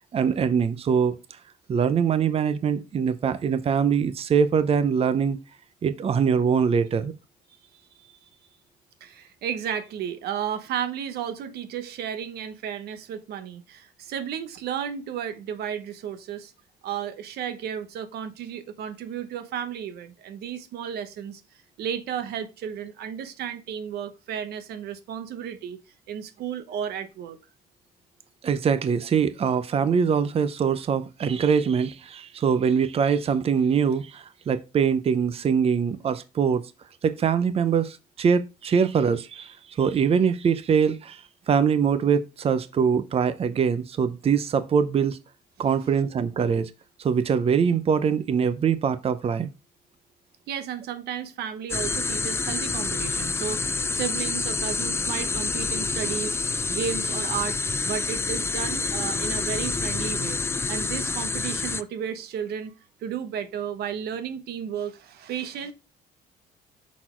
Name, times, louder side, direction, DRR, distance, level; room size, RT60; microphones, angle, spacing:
voice 1, 0.1-1.2 1.7-5.4 5.8-7.1 28.4-36.6 37.0-45.2 45.6-46.7 47.0-49.5, right 6 dB, 35° right, 0.7 m, -23 dB
voice 2, 7.7-8.3 9.0-16.5 16.8-21.4 21.8-25.8 26.1-27.4 50.5-60.4 60.7-62.7 63.0-65.7, right 8 dB, 70° right, 1.0 m, -33 dB
sound 1, 51.7-61.8, left 4 dB, 15° left, 0.4 m, -28 dB
6.3 x 4.0 x 4.5 m
cardioid pair, 110°, 17 cm